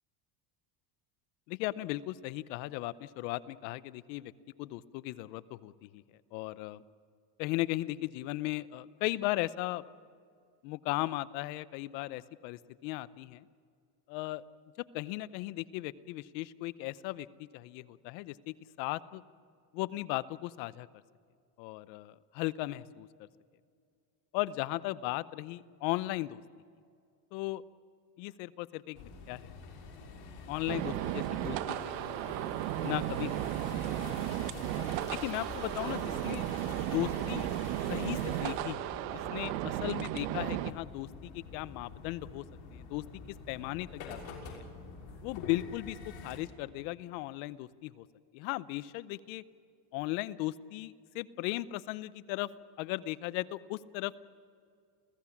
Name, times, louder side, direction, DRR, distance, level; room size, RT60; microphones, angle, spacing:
voice 1, 1.5-4.3 4.6-6.0 6.3-6.8 7.4-9.8 10.6-13.4 14.1-14.4 14.9-19.2 19.7-20.9 21.6-23.1 24.3-26.4 27.3-27.6 28.2-29.5 30.5-32.5 32.8-33.5 34.8-34.9 35.2-36.5 36.8-37.5 37.9-42.4 42.7-44.2 44.4-44.6 45.2-48.1 48.3-49.4 49.9-52.5 52.8-54.2, left 18 dB, 80° left, 17 dB, 0.9 m, -37 dB
sound 1, 28.9-46.4, left 4 dB, 60° left, 6.5 m, -47 dB
sound 2, 30.7-40.7, right 14 dB, 85° right, 1.2 m, -35 dB
28.5 x 17.5 x 7.3 m, 2.2 s
supercardioid pair, 105°, 50 cm